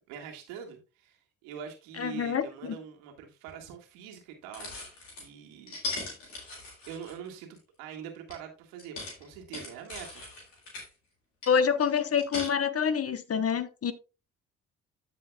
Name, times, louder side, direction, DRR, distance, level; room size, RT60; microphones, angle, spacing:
voice 1, 0.1-5.8 6.9-10.2, right 8 dB, 80° right, 1.8 m, -44 dB
voice 2, 2.0-2.8 11.5-13.9, left 7 dB, 40° left, 1.0 m, -27 dB
sound 1, 3.5-3.6 4.5-5.3 5.7-7.6 8.3-8.4 8.8-10.9 11.4-12.5, left 3 dB, 85° left, 3.0 m, -39 dB
14.5 x 5.0 x 2.3 m
hypercardioid pair, 45°, 36 cm